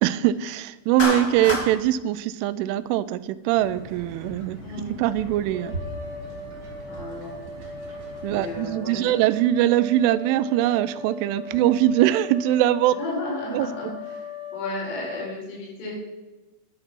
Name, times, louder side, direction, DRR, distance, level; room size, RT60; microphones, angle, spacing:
voice 1, 0.0-5.8 8.2-13.0 13.5-13.7, right 13 dB, 85° right, 16 dB, 3.0 m, -22 dB
Clapping, 1.0-1.7, left 2 dB, 45° left, 1.3 m, -26 dB
sound 1, 3.5-8.7, right 1 dB, 20° right, 3.3 m, -40 dB
voice 2, 4.6-5.0 6.9-7.4 8.3-9.1 13.0-15.9, left 2 dB, 85° left, -3 dB, 7.0 m, -33 dB
sound 2, 5.5-15.3, left 2 dB, ahead, 2.8 m, -38 dB
11.5 x 9.9 x 6.0 m, 1.1 s
omnidirectional pair, 5.7 m